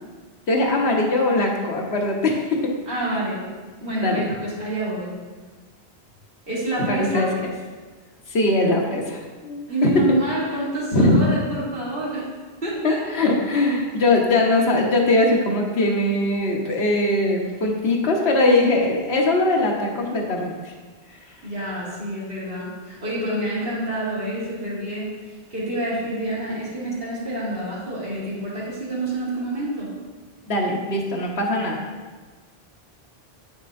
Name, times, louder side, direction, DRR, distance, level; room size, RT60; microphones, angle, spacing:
voice 1, 0.5-2.7 3.1-3.2 4.0-4.2 6.9-7.3 8.3-10.0 10.9-11.3 12.8-20.7 30.5-31.8, left 2 dB, 80° left, 0 dB, 1.2 m, -21 dB
voice 2, 2.9-3.4 3.8-5.2 6.5-7.3 9.7-12.3 12.6-13.0 21.4-29.9, right 1 dB, 60° right, -8 dB, 2.2 m, -27 dB
8.2 x 6.0 x 2.5 m, 1.4 s
omnidirectional pair, 1.1 m